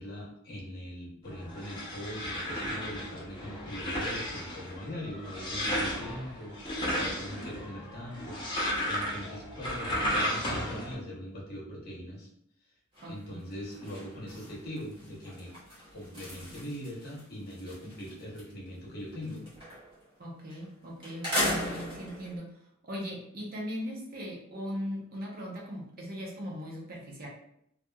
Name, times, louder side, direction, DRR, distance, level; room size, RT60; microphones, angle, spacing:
voice 1, 0.0-8.4 8.8-12.3 13.0-15.5 15.9-19.5, equal, 50° left, -4 dB, 0.9 m, -41 dB
sound 1, 1.3-10.9, equal, 25° left, 0.8 m, -34 dB
sound 2, 12.9-13.2 13.5-18.5 18.8-20.0 20.5-20.6 21.0-22.4, left 1 dB, 25° right, 1.0 m, -37 dB
voice 2, 13.0-13.4 20.2-27.3, equal, 45° right, -3 dB, 0.7 m, -39 dB
2.9 x 2.4 x 2.3 m, 0.73 s
head